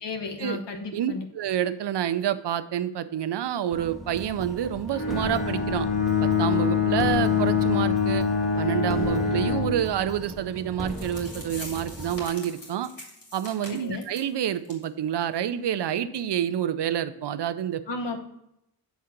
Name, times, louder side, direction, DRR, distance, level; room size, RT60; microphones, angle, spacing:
voice 1, 0.0-1.2 13.8-14.0 17.9-18.2, left 3 dB, 80° left, 4 dB, 1.1 m, -33 dB
voice 2, 0.9-5.9 6.2-8.3 8.6-12.9 13.3-17.8, right 10 dB, 75° right, 12 dB, 0.6 m, -28 dB
sound 1, 3.7-12.2, equal, ahead, 0.8 m, -38 dB
Bowed string instrument, 4.9-9.8, left 6 dB, 35° left, 1.5 m, -24 dB
sound 2, 10.6-10.7 10.9-14.3 14.6-14.8 15.1-15.2 15.7-15.8, left 1 dB, 50° left, 2.8 m, -43 dB
8.3 x 3.7 x 5.8 m, 0.81 s
wide cardioid pair, 95°, 42 cm